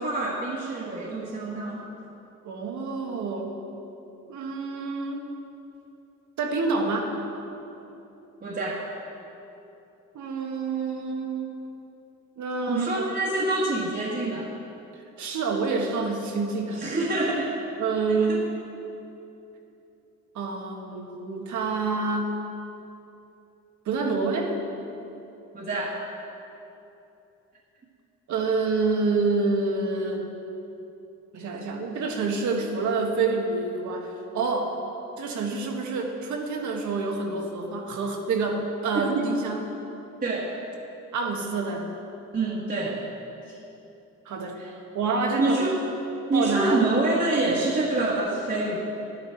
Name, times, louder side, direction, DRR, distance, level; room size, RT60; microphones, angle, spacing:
voice 1, 0.0-1.8 8.4-8.8 12.7-14.5 16.8-17.5 18.1-18.4 25.5-25.9 38.9-39.1 40.2-40.5 42.3-43.0 43.4-43.6 44.6-44.7 45.4-45.8 46.3-48.8, right 2 dB, 35° right, -6 dB, 1.6 m, -26 dB
voice 2, 2.4-3.5 4.3-5.3 6.4-7.2 10.1-11.6 12.4-13.0 15.2-16.8 17.8-18.5 20.3-22.3 23.8-24.5 28.3-30.3 31.3-34.8 35.2-39.7 41.1-41.9 44.2-44.6 44.9-45.6 46.3-46.9, right 4 dB, 70° right, 2 dB, 1.5 m, -27 dB
11.5 x 9.6 x 4.5 m, 2.9 s
cardioid pair, 90°, 30 cm